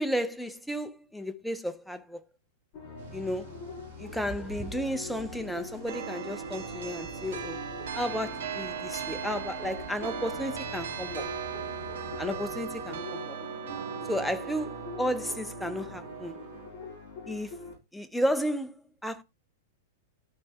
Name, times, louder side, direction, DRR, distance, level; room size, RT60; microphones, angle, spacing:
voice 1, 0.0-2.2 3.1-3.5 4.0-7.6 7.9-11.3 12.2-13.4 14.1-16.4 17.3-17.6 17.9-19.2, equal, ahead, 0.4 m, -33 dB
sound 1, 2.7-17.7, left 3 dB, 30° left, 4.4 m, -44 dB
sound 2, 3.0-13.0, right 5 dB, 50° right, 1.2 m, -49 dB
sound 3, 5.9-16.7, right 7 dB, 85° right, 2.7 m, -38 dB
12.5 x 4.4 x 3.4 m
supercardioid pair, 175°, 0 cm